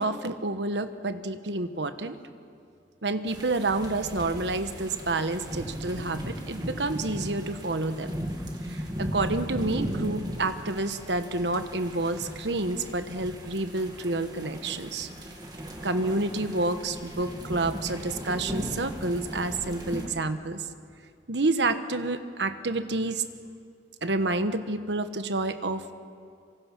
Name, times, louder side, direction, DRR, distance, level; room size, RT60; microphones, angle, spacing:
voice 1, 0.0-2.2 3.0-8.1 8.7-15.1 15.8-20.6 21.3-23.2 24.0-26.0, right 2 dB, 85° right, 10 dB, 1.2 m, -29 dB
sound 1, 3.3-20.1, equal, 25° right, 2.5 m, -37 dB
26.5 x 24.5 x 6.1 m, 2.3 s
head